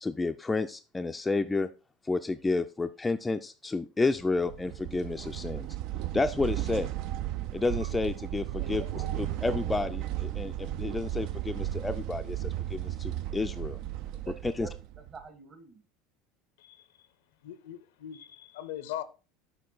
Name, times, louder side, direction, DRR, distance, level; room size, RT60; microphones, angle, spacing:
voice 1, 0.0-1.7 2.0-5.7 6.1-6.9 7.5-13.8 14.4-14.7, left 3 dB, 15° left, 0.3 m, -31 dB
sound 1, 4.2-15.2, right 13 dB, 60° right, 0.4 m, -35 dB
voice 2, 8.4-9.7 14.1-15.8, right 4 dB, 40° right, 1.6 m, -48 dB
voice 3, 16.6-17.1 17.4-19.0, left 12 dB, 75° left, 0.5 m, -40 dB
6.7 x 4.6 x 3.9 m
hypercardioid pair, 90°, 0 cm